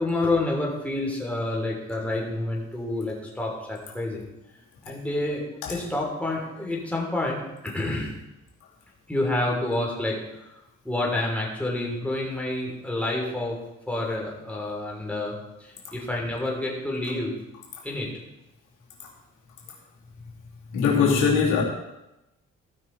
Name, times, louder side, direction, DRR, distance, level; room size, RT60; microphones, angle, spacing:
voice 1, 0.0-4.2 4.8-5.4 5.7-8.1 9.1-10.5 10.8-13.6 13.9-17.3 17.8-18.1, left 2 dB, 5° left, -2 dB, 3.3 m, -28 dB
voice 2, 20.7-21.6, left 6 dB, 80° left, -3 dB, 2.7 m, -21 dB
15.0 x 5.9 x 4.6 m, 0.94 s
cardioid pair, 90°, 30 cm